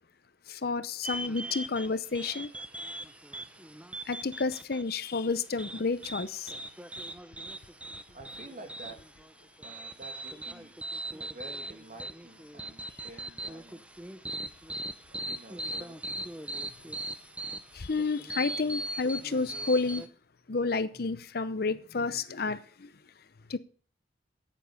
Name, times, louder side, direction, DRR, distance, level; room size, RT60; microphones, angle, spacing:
voice 1, 0.5-2.5 4.1-6.5 17.7-20.1 20.5-22.9 23.5-23.6, left 4 dB, 60° left, 13 dB, 0.7 m, -30 dB
sound 1, 1.0-20.1, right 1 dB, 5° right, 0.6 m, -40 dB
voice 2, 8.1-9.0 9.6-10.7 11.2-13.8 15.1-16.3, right 2 dB, 50° right, 4 dB, 2.3 m, -49 dB
9.4 x 9.3 x 5.4 m, 0.43 s
head